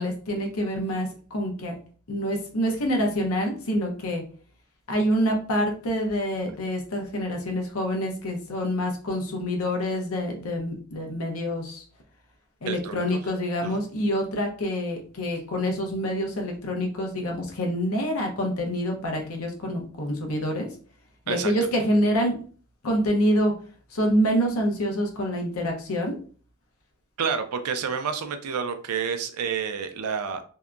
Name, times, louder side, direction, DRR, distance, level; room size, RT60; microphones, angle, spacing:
voice 1, 0.0-1.8 2.1-4.2 4.9-11.8 12.6-20.7 21.3-22.3 22.8-23.5 23.9-26.2, equal, 70° left, 2 dB, 0.7 m, -26 dB
voice 2, 12.7-13.2 13.6-13.8 21.3-21.5 27.2-30.4, right 6 dB, 85° right, 8 dB, 0.4 m, -29 dB
2.7 x 2.1 x 2.4 m, 0.42 s
head